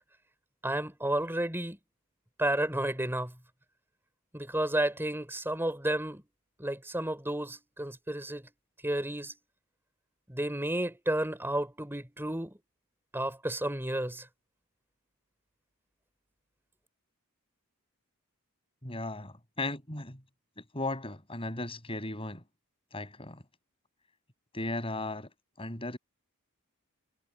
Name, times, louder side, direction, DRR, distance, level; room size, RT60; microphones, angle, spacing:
voice 1, 0.6-1.8 2.4-3.3 4.3-6.2 6.6-8.5 8.8-9.3 10.3-12.6 13.1-14.3, right 1 dB, 10° right, 5.1 m, -31 dB
voice 2, 18.8-20.2 20.6-22.4 22.9-23.4 24.5-25.3 25.6-26.0, left 2 dB, 25° left, 7.0 m, -36 dB
head